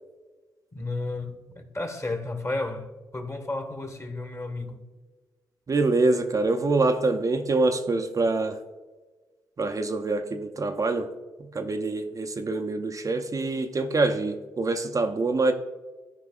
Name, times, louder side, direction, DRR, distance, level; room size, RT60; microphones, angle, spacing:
voice 1, 0.7-4.9, left 2 dB, 30° left, 1.5 m, -33 dB
voice 2, 5.7-8.6 9.6-11.1 11.4-15.5, right 3 dB, 40° right, 0.6 m, -25 dB
12.0 x 4.9 x 2.4 m
supercardioid pair, 45°, 9 cm